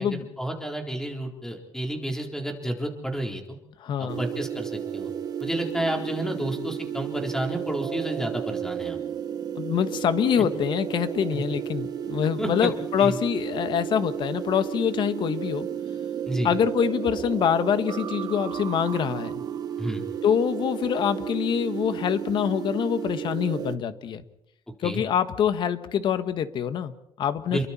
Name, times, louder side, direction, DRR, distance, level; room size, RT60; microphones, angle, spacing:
voice 1, 0.4-3.4 4.0-5.1 5.4-9.0 11.3-11.4 12.4-12.7 13.0-13.2 16.3-16.5 19.8-20.0 24.8-25.0 27.5-27.7, right 1 dB, 5° left, 2 dB, 3.9 m, -30 dB
voice 2, 3.8-4.2 9.6-15.7 16.4-19.4 20.2-24.2 24.8-27.7, left 8 dB, 60° left, 11 dB, 1.5 m, -25 dB
sound 1, 4.1-23.8, right 8 dB, 45° right, 1.4 m, -33 dB
29.5 x 23.0 x 4.4 m, 0.86 s
cardioid pair, 125°, 9 cm